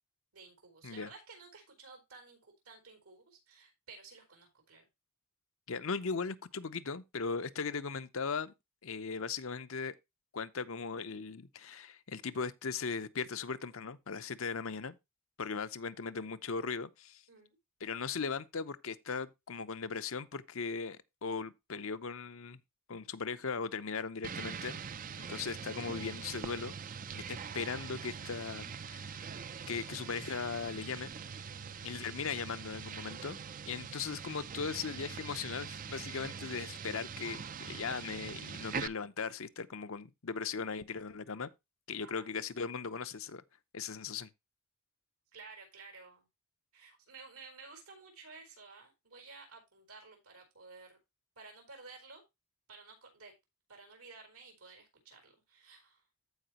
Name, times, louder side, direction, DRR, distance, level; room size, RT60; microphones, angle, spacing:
voice 1, 0.3-4.9 17.3-17.6 31.5-31.8 42.0-42.3 45.3-46.3 46.7-51.0 51.4-52.2 52.7-53.3 53.7-56.0, right 4 dB, 90° right, 4.6 m, -54 dB
voice 2, 5.7-8.5 8.8-9.9 10.3-15.0 15.4-17.2 17.8-22.6 22.9-24.8 25.2-26.7 27.1-29.2 29.7-31.1 31.8-33.4 33.7-41.5 41.9-43.4 43.7-44.3, left 5 dB, 65° left, 0.7 m, -38 dB
sound 1, 24.2-38.9, right 6 dB, 40° right, 0.5 m, -43 dB
14.5 x 5.0 x 2.9 m
head